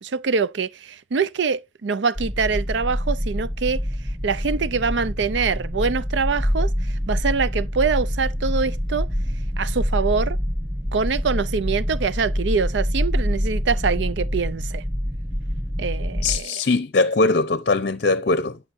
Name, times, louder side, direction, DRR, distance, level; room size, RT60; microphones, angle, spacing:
voice 1, 0.0-3.8 4.2-9.1 9.6-10.4 10.9-14.8 15.8-16.5, right 5 dB, 70° right, 0.5 m, -24 dB
sound 1, 2.2-16.4, equal, 5° right, 0.5 m, -26 dB
voice 2, 16.2-18.6, left 3 dB, 55° left, 0.6 m, -21 dB
9.8 x 6.4 x 2.6 m
head